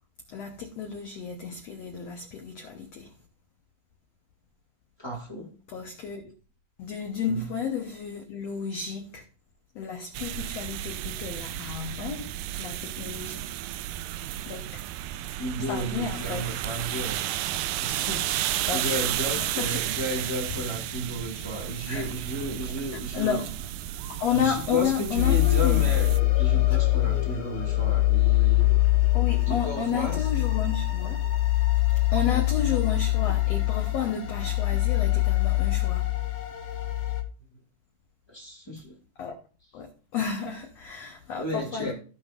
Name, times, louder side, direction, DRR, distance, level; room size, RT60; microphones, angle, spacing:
voice 1, 0.3-3.1 5.7-6.3 6.8-9.2 9.7-13.5 14.5-14.8 15.7-16.5 18.7-18.8 19.4-19.9 21.9-22.1 23.1-23.5 24.1-25.9 26.7-26.8 29.1-31.3 32.1-36.1 39.2-39.4 39.7-41.9, left 7 dB, 90° left, 1.4 m, -32 dB
voice 2, 5.0-5.5 7.2-7.5 15.4-17.2 17.8-23.4 24.3-28.8 29.5-30.3 36.1-36.3 38.3-39.0 41.3-41.9, equal, 15° left, 0.9 m, -33 dB
sound 1, 10.1-26.2, right 13 dB, 80° right, 2.1 m, -33 dB
sound 2, 25.1-37.2, left 18 dB, 70° left, 1.7 m, -24 dB
16.0 x 5.4 x 2.4 m
omnidirectional pair, 4.3 m